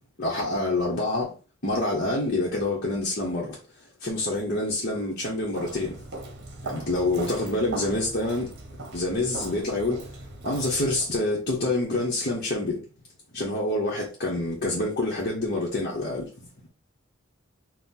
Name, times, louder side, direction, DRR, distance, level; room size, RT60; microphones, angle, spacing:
voice 1, 0.2-1.3 1.6-3.6 4.0-6.0 6.6-8.5 8.9-10.0 10.4-12.8 13.3-16.3, left 2 dB, 45° left, 1.2 m, -27 dB
Walk footsteps, 5.5-11.1, right 2 dB, 55° right, 1.0 m, -39 dB
4.5 x 2.4 x 3.8 m
head